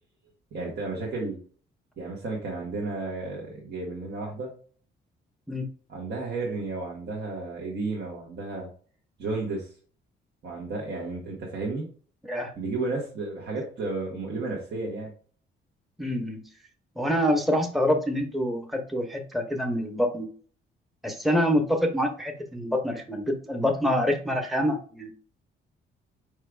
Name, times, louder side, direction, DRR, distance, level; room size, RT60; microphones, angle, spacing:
voice 1, 0.5-1.4 2.0-4.5 5.9-8.7 9.2-9.7 10.4-11.8 12.5-15.1, right 3 dB, 60° right, -3 dB, 1.6 m, -32 dB
voice 2, 16.0-16.4 17.0-20.3 21.0-25.1, equal, ahead, 4 dB, 0.9 m, -26 dB
4.9 x 4.5 x 2.4 m, 0.43 s
cardioid pair, 90°, 20 cm